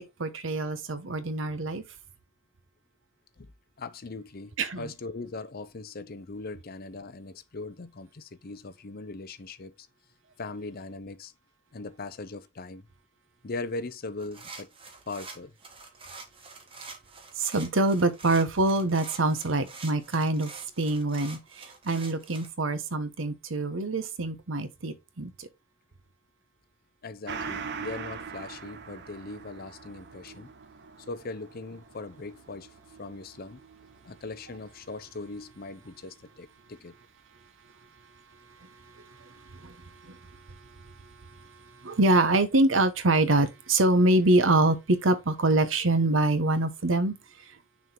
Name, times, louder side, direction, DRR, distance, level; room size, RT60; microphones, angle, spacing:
voice 1, 0.2-1.8 4.6-4.9 17.4-20.5 20.8-25.5 39.0-40.2 40.5-41.5 41.8-47.1, right 2 dB, 90° right, 1.0 m, -25 dB
voice 2, 3.8-9.9 10.4-11.3 11.7-12.9 13.4-14.7 15.1-15.6 27.0-30.5 31.1-33.6 34.0-36.9, left 3 dB, 50° left, 0.7 m, -40 dB
sound 1, 14.2-22.5, right 4 dB, 30° right, 1.3 m, -46 dB
Gong, 27.3-36.2 36.6-36.7, right 5 dB, 60° right, 0.8 m, -43 dB
6.3 x 3.7 x 4.3 m
head